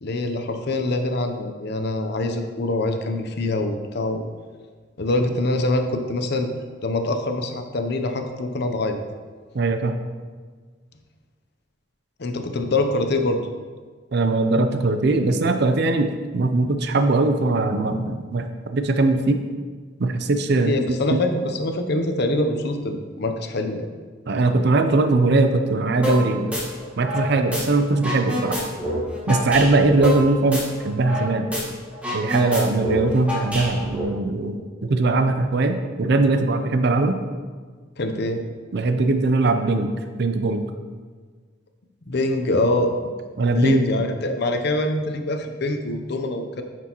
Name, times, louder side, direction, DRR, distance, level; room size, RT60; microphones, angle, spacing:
voice 1, 0.0-4.2 5.0-6.5 6.8-9.0 12.2-13.4 20.5-23.8 35.3-35.4 38.0-38.4 42.1-42.9 43.5-46.6, left 2 dB, 60° left, 6 dB, 0.7 m, -24 dB
voice 2, 9.5-10.0 14.1-18.5 18.7-19.4 20.0-20.7 21.1-21.2 24.3-26.5 27.0-28.6 29.3-31.5 32.1-37.2 38.7-39.9 40.2-40.6 43.4-44.0, right 2 dB, 60° right, 7 dB, 0.6 m, -20 dB
sound 1, 26.0-26.2 26.5-27.6 27.9-31.2 31.5-31.6 31.9-34.0, left 1 dB, 5° right, 1.5 m, -27 dB
9.4 x 6.1 x 3.0 m, 1.5 s
head